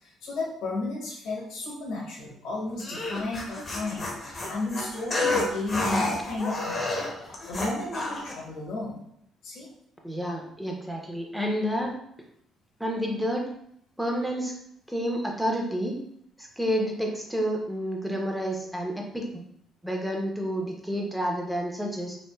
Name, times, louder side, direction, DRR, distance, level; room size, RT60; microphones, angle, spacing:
voice 1, 0.0-9.0 9.4-9.7, left 2 dB, 75° left, -4 dB, 1.0 m, -33 dB
sound 1, 2.8-8.3, left 2 dB, 30° left, 0.7 m, -30 dB
voice 2, 10.0-11.9 12.8-13.5 14.0-14.5 14.9-15.9 16.4-19.4 19.8-22.2, equal, 5° right, 0 dB, 0.7 m, -29 dB
3.1 x 2.3 x 2.2 m, 0.70 s
supercardioid pair, 80°, 0 cm